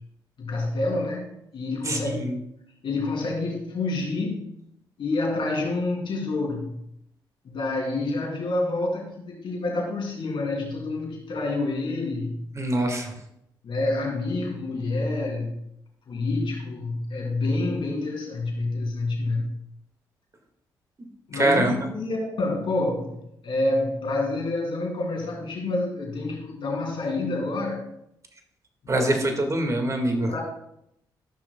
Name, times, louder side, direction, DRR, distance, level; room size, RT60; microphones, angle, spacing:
voice 1, 0.4-2.3 2.8-4.5 5.0-6.7 7.4-12.4 13.6-15.5 16.1-19.5 21.3-27.8 28.8-29.2 30.1-30.4, left 2 dB, 65° left, 0 dB, 2.9 m, -28 dB
voice 2, 1.9-2.4 12.6-13.1 21.3-21.8 28.9-30.4, right 1 dB, 35° right, 4 dB, 1.9 m, -24 dB
13.0 x 6.1 x 2.3 m, 0.78 s
supercardioid pair, 55°, 9 cm